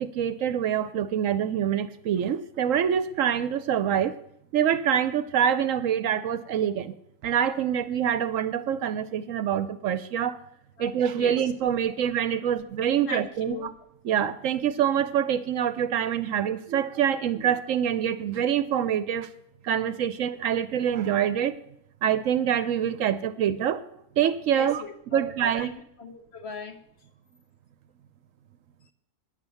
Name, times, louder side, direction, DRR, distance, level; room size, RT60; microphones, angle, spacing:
voice 1, 0.0-4.2 4.5-6.9 7.2-10.4 10.8-13.7 14.0-19.3 19.6-21.6 22.0-23.9 24.2-24.8 25.1-25.7, right 9 dB, 70° right, 13 dB, 0.9 m, -25 dB
voice 2, 10.8-11.5 11.8-12.0 13.1-13.7 24.5-26.8, left 4 dB, 50° left, 6 dB, 1.2 m, -39 dB
10.0 x 8.0 x 6.9 m, 0.75 s
omnidirectional pair, 1.5 m